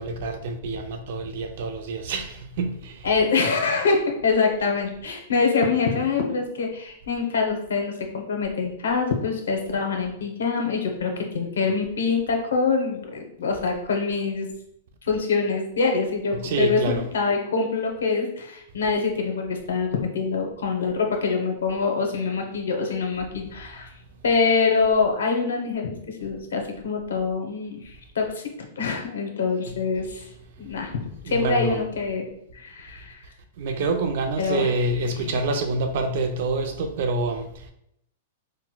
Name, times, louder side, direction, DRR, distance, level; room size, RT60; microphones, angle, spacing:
voice 1, 0.0-3.1 16.4-17.1 29.7-29.8 31.2-31.8 33.6-37.7, right 3 dB, 65° right, 6 dB, 0.5 m, -27 dB
voice 2, 3.0-14.5 15.1-23.9 24.2-28.4 28.8-30.3 30.6-30.9 31.3-32.3 32.5-33.2 34.4-34.7 35.2-35.3, left 4 dB, 85° left, 2 dB, 0.7 m, -25 dB
4.1 x 2.1 x 2.2 m, 0.76 s
hypercardioid pair, 125°, 0 cm